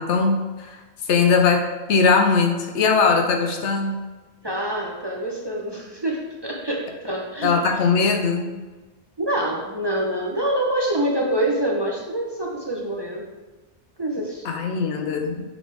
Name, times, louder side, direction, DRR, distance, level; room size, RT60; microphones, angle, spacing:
voice 1, 0.0-4.0 7.4-8.6 14.4-15.4, left 5 dB, 85° left, 4 dB, 1.1 m, -20 dB
voice 2, 4.4-7.5 9.2-13.3 14.0-14.5, right 1 dB, 25° right, -2 dB, 0.7 m, -26 dB
6.2 x 4.8 x 3.3 m, 1.2 s
omnidirectional pair, 1.2 m